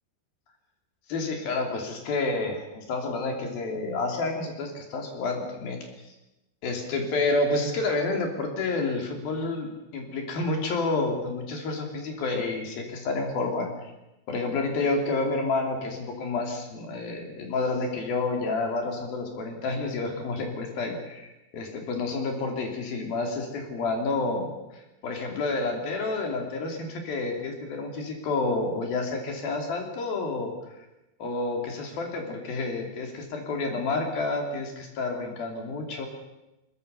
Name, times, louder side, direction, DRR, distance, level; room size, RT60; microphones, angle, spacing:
voice 1, 1.1-5.9 6.6-13.7 14.3-21.3 21.5-24.5 25.0-30.5 31.2-36.1, left 3 dB, 60° left, 3 dB, 4.6 m, -29 dB
21.5 x 21.5 x 6.9 m, 0.96 s
omnidirectional pair, 5.0 m